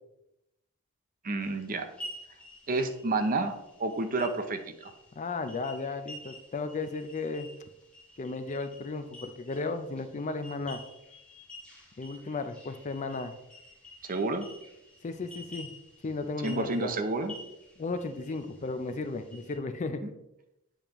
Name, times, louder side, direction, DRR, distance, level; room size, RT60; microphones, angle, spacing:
voice 1, 1.2-1.9 2.7-3.5 3.8-4.9 14.0-14.5 16.4-17.3 20.0-20.1, right 2 dB, 40° right, 7 dB, 0.6 m, -30 dB
sound 1, 1.4-19.6, left 1 dB, 5° left, 1.6 m, -50 dB
voice 2, 5.2-7.5 8.2-10.8 12.0-13.3 15.0-15.7 16.0-16.9 17.8-20.0, left 3 dB, 35° left, 9 dB, 0.4 m, -34 dB
8.7 x 5.1 x 3.0 m, 0.88 s
head